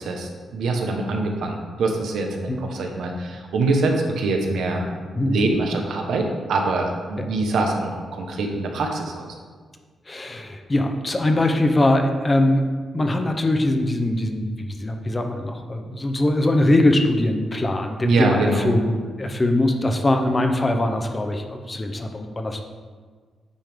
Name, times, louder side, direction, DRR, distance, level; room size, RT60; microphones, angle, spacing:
voice 1, 0.0-4.8 5.3-9.3 18.0-18.7, right 3 dB, 85° right, 2 dB, 1.0 m, -24 dB
voice 2, 10.1-12.7 12.9-22.6, left 1 dB, 20° left, 5 dB, 0.6 m, -22 dB
9.0 x 5.1 x 3.6 m, 1.5 s
wide cardioid pair, 160°, 0 cm